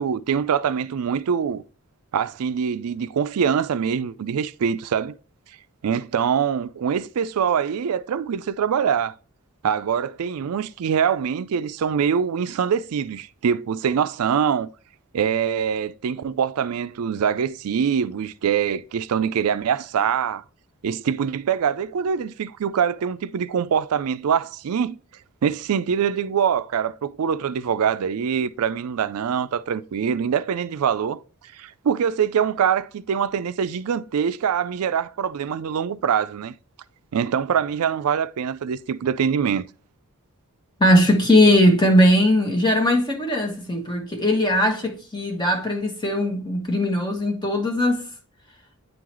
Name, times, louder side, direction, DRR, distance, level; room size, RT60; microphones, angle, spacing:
voice 1, 0.0-1.6 2.1-5.1 5.8-9.1 9.6-14.7 15.1-20.4 20.8-25.0 25.4-31.2 31.5-36.5 37.1-39.6, right 7 dB, 80° right, 0.4 m, -24 dB
voice 2, 40.8-48.1, left 1 dB, 20° left, 1.3 m, -19 dB
9.2 x 3.8 x 3.0 m
head